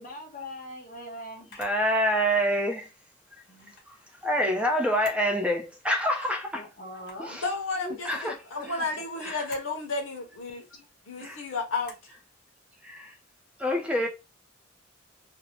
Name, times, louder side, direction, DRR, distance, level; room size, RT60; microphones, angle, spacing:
voice 1, 0.0-1.5 3.5-3.7 6.5-7.4 7.9-8.0 8.6-8.9 14.0-14.1, left 1 dB, 40° left, 0.7 m, -41 dB
Camera, 1.5-1.8 3.5-3.9 4.8-5.3 5.7-5.8 6.9-7.3 9.3-9.7 11.8-12.1, left 3 dB, 60° left, 1.0 m, -48 dB
voice 2, 1.6-2.9 3.3-3.4 3.9-4.0 4.2-6.7 7.2-7.4 7.8-8.4 8.7-8.9 9.2-9.5 11.2-11.4 12.8-13.2 13.6-14.1, equal, 5° right, 0.4 m, -27 dB
voice 3, 7.4-8.1 8.5-10.7 11.1-12.0, left 3 dB, 90° left, 0.7 m, -32 dB
2.6 x 2.0 x 2.9 m
head